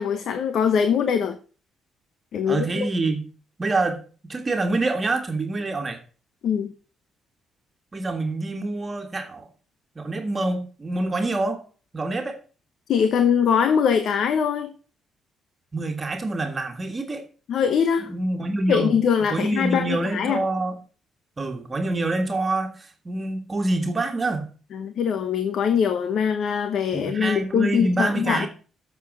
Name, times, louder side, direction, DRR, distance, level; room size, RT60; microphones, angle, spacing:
voice 1, 0.0-1.4 2.3-2.9 6.4-6.7 12.9-14.7 17.5-18.1 18.7-20.4 24.7-28.5, left 7 dB, 70° left, 1.0 m, -22 dB
voice 2, 2.5-3.2 3.6-4.0 4.3-6.0 7.9-9.5 10.0-11.6 11.9-12.4 15.7-17.3 18.1-19.0 19.3-20.7 21.4-24.5 26.9-28.5, right 2 dB, 30° right, 1.7 m, -26 dB
8.2 x 7.1 x 6.2 m
cardioid pair, 90°, 0 cm